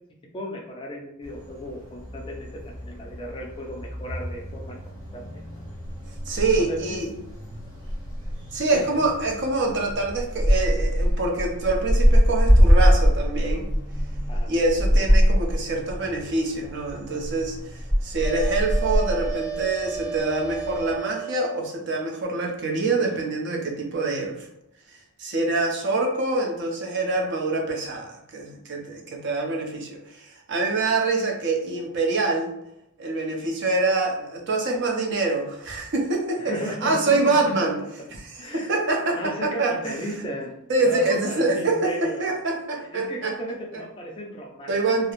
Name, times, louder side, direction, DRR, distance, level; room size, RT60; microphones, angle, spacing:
voice 1, 0.3-2.5 2.8-4.8 5.1-5.3 5.5-5.6 6.6-7.0 8.7-9.0 14.3-14.5 36.4-37.7 38.4-38.7 39.1-40.5 40.8-42.3 42.8-45.0, equal, 25° left, 0 dB, 0.3 m, -35 dB
sound 1, 1.2-21.0, equal, 15° right, 0.9 m, -24 dB
voice 2, 6.3-7.1 8.5-13.7 14.5-24.5 25.2-32.5 33.0-37.8 38.3-40.2 40.7-43.3 44.7-45.1, right 3 dB, 55° right, 1 dB, 0.5 m, -25 dB
sound 2, 18.2-21.7, right 6 dB, 85° right, 0.7 m, -33 dB
2.3 x 2.0 x 2.9 m, 0.80 s
head